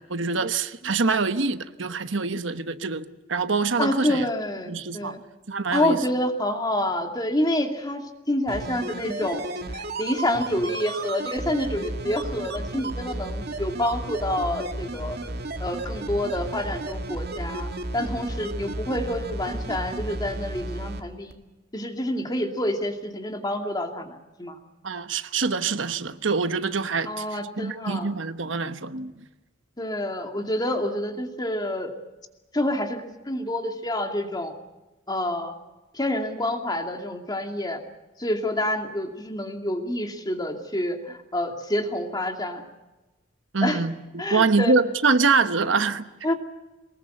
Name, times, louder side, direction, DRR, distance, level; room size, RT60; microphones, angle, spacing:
voice 1, 0.0-4.3 4.7-5.2 5.5-6.0 24.8-27.2 27.6-29.1 43.5-46.1, right 4 dB, 90° right, 1.1 m, -25 dB
voice 2, 3.8-5.2 5.7-9.4 9.7-15.2 15.6-21.4 21.7-24.6 27.1-28.1 29.8-31.9 32.5-34.5 35.1-35.5 35.9-37.8 38.2-42.6 43.6-43.8 44.2-44.7 46.2-46.4, left 1 dB, 20° left, 2.4 m, -28 dB
sound 1, 8.5-21.0 21.3-21.4, right 2 dB, 60° right, 2.2 m, -33 dB
23.5 x 20.5 x 7.9 m
head